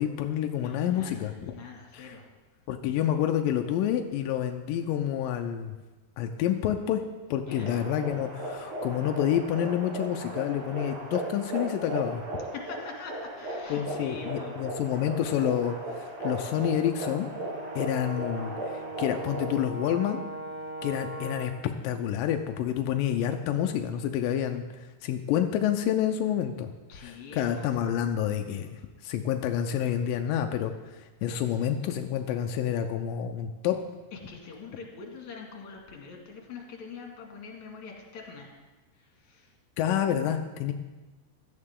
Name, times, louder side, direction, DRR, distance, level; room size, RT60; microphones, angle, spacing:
voice 1, 0.0-1.3 1.9-2.2 2.7-5.7 6.2-7.0 7.3-12.2 13.7-17.3 17.8-20.2 20.8-26.7 27.0-28.7 29.0-33.8 39.8-40.7, left 10 dB, 85° left, 5 dB, 2.0 m, -28 dB
voice 2, 0.6-2.3 7.5-7.8 12.5-14.6 26.9-27.8 34.1-38.6 38.9-39.5, left 5 dB, 50° left, 0 dB, 3.1 m, -44 dB
sound 1, 7.5-19.6, right 1 dB, 55° right, 3.0 m, -37 dB
Brass instrument, 17.3-21.7, right 2 dB, 75° right, 1.3 m, -39 dB
16.5 x 12.5 x 3.7 m, 1.2 s
omnidirectional pair, 4.7 m